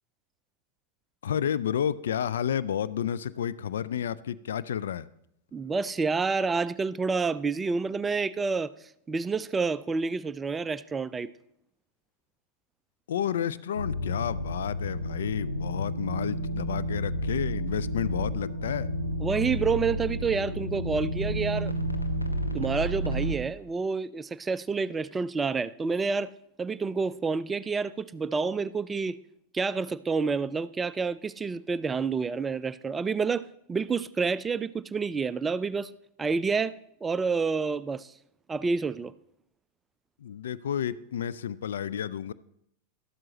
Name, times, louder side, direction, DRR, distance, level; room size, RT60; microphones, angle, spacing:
voice 1, 1.2-5.1 13.1-18.9 40.2-42.3, left 9 dB, 65° left, 0.4 m, -31 dB
voice 2, 5.5-8.7 9.1-11.3 19.2-21.7 22.5-26.3 26.6-29.2 29.5-35.9 36.2-38.1 38.5-39.1, right 4 dB, 15° right, 0.3 m, -29 dB
sound 1, 13.7-23.3, equal, 85° left, 0.9 m, -31 dB
13.0 x 12.0 x 3.0 m
figure-of-eight pair, 90°, 0 cm